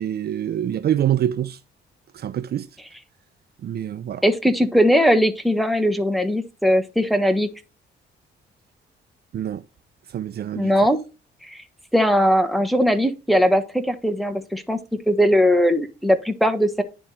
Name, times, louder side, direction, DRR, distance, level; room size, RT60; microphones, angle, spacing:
voice 1, 0.0-1.6 2.1-2.7 3.6-4.2 9.3-9.6 10.1-10.7, right 11 dB, 55° right, 0.5 m, -25 dB
voice 2, 4.2-7.5 10.5-11.0 11.4-11.6 11.9-14.8 15.1-16.8, equal, ahead, 1.2 m, -19 dB
10.0 x 3.5 x 4.2 m
cardioid pair, 90°, 20 cm